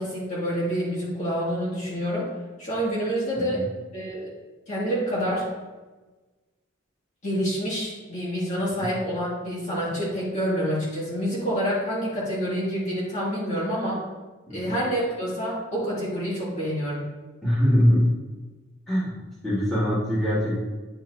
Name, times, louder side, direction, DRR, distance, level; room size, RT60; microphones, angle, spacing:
voice 1, 0.0-2.3 2.6-3.6 3.9-4.3 4.7-5.4 7.2-14.0 14.5-17.1, equal, 35° left, -7 dB, 2.5 m, -27 dB
voice 2, 17.4-18.0 18.9-19.1 19.4-20.6, equal, ahead, -11 dB, 2.7 m, -22 dB
9.9 x 6.2 x 2.9 m, 1.2 s
head